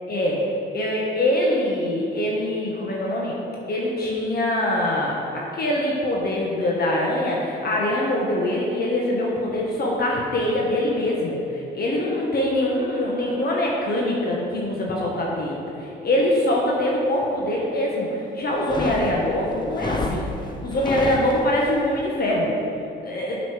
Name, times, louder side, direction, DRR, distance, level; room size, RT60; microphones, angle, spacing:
voice 1, 0.1-0.4 0.7-3.4 3.7-20.3 20.6-22.5 23.0-23.4, left 1 dB, 50° left, -3 dB, 1.4 m, -23 dB
sound 1, 18.5-21.8, left 2 dB, 20° left, 0.8 m, -30 dB
8.1 x 6.7 x 5.0 m, 2.9 s
cardioid pair, 90°, 20 cm